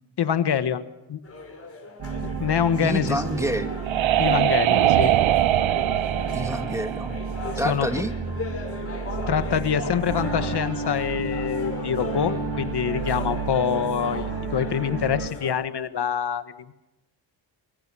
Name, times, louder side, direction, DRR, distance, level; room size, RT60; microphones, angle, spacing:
voice 1, 0.2-1.2 2.4-3.2 4.2-5.1 7.5-7.9 9.3-16.7, left 8 dB, 55° left, 11 dB, 1.5 m, -25 dB
sound 1, 1.2-15.5, left 3 dB, 30° left, 5.8 m, -38 dB
sound 2, 2.0-15.3, right 4 dB, 50° right, 4.9 m, -32 dB
voice 2, 2.8-3.7 6.3-7.2 7.6-8.1, equal, 5° right, 7 dB, 1.5 m, -28 dB
sound 3, 3.3-7.9, right 13 dB, 70° right, 0.9 m, -22 dB
25.0 x 24.0 x 6.3 m, 0.97 s
wide cardioid pair, 145°, 48 cm